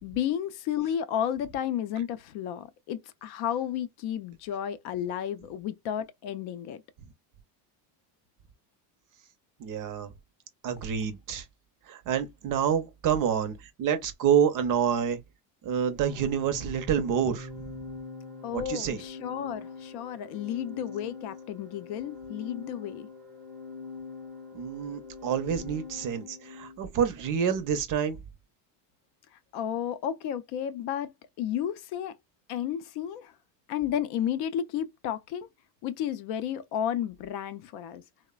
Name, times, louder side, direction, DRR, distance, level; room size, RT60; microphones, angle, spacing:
voice 1, 0.0-6.8 18.4-23.1 29.5-31.1 31.4-32.1 32.5-33.3 33.7-35.5 35.8-38.0, left 10 dB, 55° left, 0.5 m, -32 dB
voice 2, 9.6-10.1 10.6-11.5 11.9-15.2 15.6-17.5 18.5-19.0 24.5-28.2, right 8 dB, 40° right, 0.6 m, -28 dB
Organ, 16.0-26.8, left 3 dB, 5° left, 0.4 m, -43 dB
3.1 x 2.1 x 2.2 m
cardioid pair, 135°, 48 cm